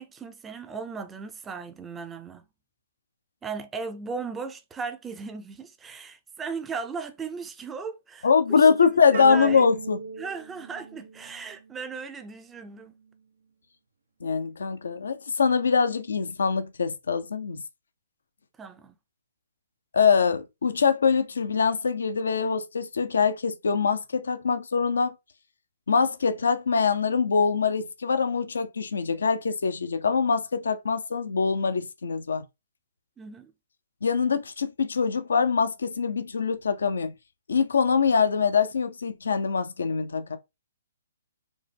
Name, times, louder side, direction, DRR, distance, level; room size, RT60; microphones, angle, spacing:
voice 1, 0.0-2.4 3.4-9.6 10.2-12.9 18.6-19.0 33.2-33.5, right 5 dB, 10° right, 0.6 m, -37 dB
voice 2, 8.2-10.0 14.2-17.6 19.9-25.1 25.9-32.4 34.0-37.1 37.5-40.4, left 5 dB, 80° left, 0.7 m, -23 dB
sound 1, 9.1-11.7, right 4 dB, 75° right, 0.8 m, -36 dB
5.0 x 2.1 x 3.5 m
hypercardioid pair, 145°, 0 cm